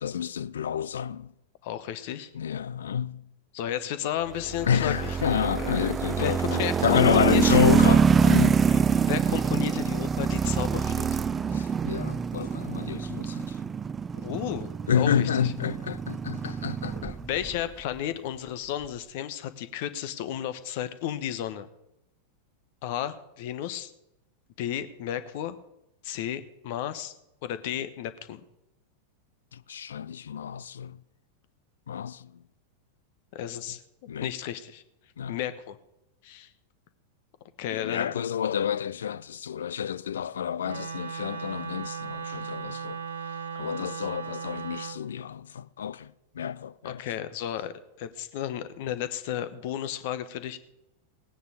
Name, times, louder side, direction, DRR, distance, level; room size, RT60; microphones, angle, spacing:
voice 1, 0.0-1.3 2.3-3.2 4.7-8.6 11.5-13.6 14.9-17.2 29.5-31.0 31.9-32.3 34.1-34.3 35.2-35.4 37.7-43.0 43.6-47.0, left 8 dB, 65° left, 0.4 m, -29 dB
voice 2, 1.6-2.3 3.5-5.2 5.6-5.8 6.0-7.4 8.7-11.2 14.1-15.5 17.0-21.7 22.8-23.9 24.6-25.6 26.0-27.1 27.4-28.4 33.3-33.8 34.2-34.8 35.3-35.8 36.2-36.5 37.6-38.1 46.8-50.6, left 10 dB, 50° left, 1.0 m, -33 dB
sound 1, 4.4-17.6, right 6 dB, 20° right, 0.4 m, -25 dB
Wind instrument woodwind instrument, 40.6-45.0, right 6 dB, 70° right, 1.1 m, -37 dB
18.0 x 9.4 x 5.0 m
figure-of-eight pair, 90°, 0 cm